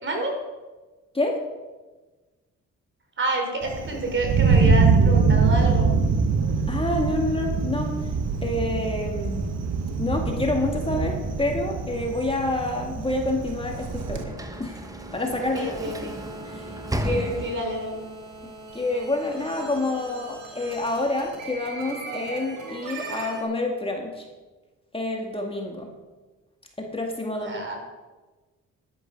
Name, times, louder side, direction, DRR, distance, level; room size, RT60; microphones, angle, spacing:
voice 1, 0.0-0.4 3.2-5.9 15.5-16.2 17.0-18.0 27.2-27.8, right 1 dB, 40° right, 2 dB, 4.1 m, -28 dB
Thunder, 3.6-14.2, right 4 dB, 55° right, 1.7 m, -23 dB
voice 2, 6.7-8.0 8.4-9.6 10.0-14.3 14.6-14.8 15.1-15.8 16.0-16.2 16.5-16.7 17.0-17.5 18.4-24.3 24.9-25.9 26.8-27.6, left 2 dB, 20° left, 1 dB, 2.0 m, -28 dB
Sliding door / Slam, 13.2-18.0, right 1 dB, 10° right, 1.2 m, -34 dB
sound 1, 13.9-23.4, right 3 dB, 80° right, 3.7 m, -40 dB
11.5 x 11.5 x 5.2 m, 1.2 s
cardioid pair, 90°, 30 cm